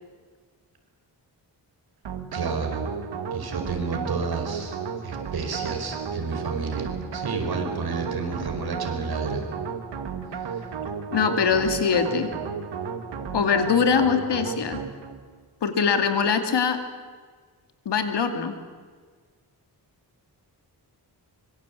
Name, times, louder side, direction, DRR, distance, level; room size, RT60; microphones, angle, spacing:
sound 1, 2.0-15.2, right 6 dB, 85° right, 2.2 m, -33 dB
voice 1, 2.3-2.8 3.3-9.4 10.3-10.6, right 4 dB, 60° right, 4 dB, 4.9 m, -31 dB
voice 2, 11.1-12.3 13.3-14.8 15.6-16.8 17.9-18.6, left 6 dB, 80° left, 7 dB, 2.6 m, -22 dB
25.0 x 24.0 x 8.4 m, 1.5 s
wide cardioid pair, 140°, 41 cm